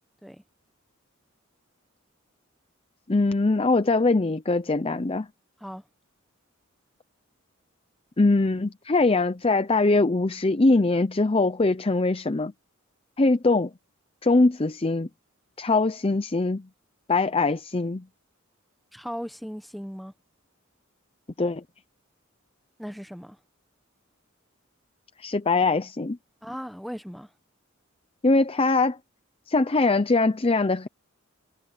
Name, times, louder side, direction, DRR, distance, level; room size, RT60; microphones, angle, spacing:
voice 1, 3.1-5.3 8.2-12.5 13.2-13.7 14.2-15.1 15.6-16.7 17.1-18.1 21.4-21.6 25.2-26.2 28.2-29.0 29.5-30.9, left 3 dB, 25° left, 0.6 m, -22 dB
voice 2, 18.9-20.1 22.8-23.4 26.4-27.3, equal, ahead, 1.1 m, -37 dB
head